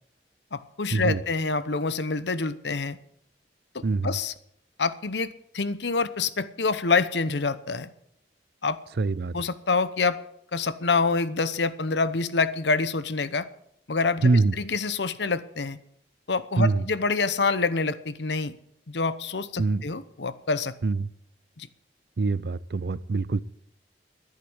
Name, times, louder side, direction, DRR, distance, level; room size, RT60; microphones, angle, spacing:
voice 1, 0.5-3.0 4.0-4.3 4.8-7.9 8.6-8.8 9.3-10.2 10.5-13.5 13.9-15.8 16.3-18.5 18.9-20.7 21.6-21.7, left 4 dB, 75° left, 0.9 m, -26 dB
voice 2, 3.8-4.2 9.0-9.3 14.2-14.5 16.6-16.8 19.6-19.8 20.8-21.1 22.2-23.4, right 3 dB, 60° right, 0.5 m, -24 dB
12.0 x 10.5 x 8.1 m
head